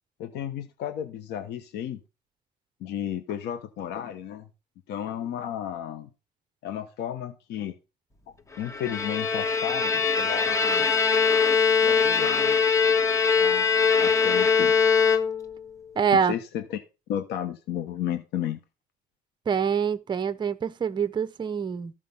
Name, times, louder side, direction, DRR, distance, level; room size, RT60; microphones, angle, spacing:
voice 1, 0.2-2.0 2.8-4.5 4.9-6.1 6.6-7.7 8.6-10.9 11.8-12.6 13.4-13.7 14.0-14.8 16.1-16.8 17.1-18.6, left 10 dB, 80° left, 1.0 m, -33 dB
Bowed string instrument, 8.7-15.6, left 5 dB, 20° left, 1.3 m, -22 dB
voice 2, 16.0-16.3 19.5-21.9, right 7 dB, 25° right, 0.7 m, -25 dB
13.0 x 5.1 x 5.5 m
cardioid pair, 110°, 17 cm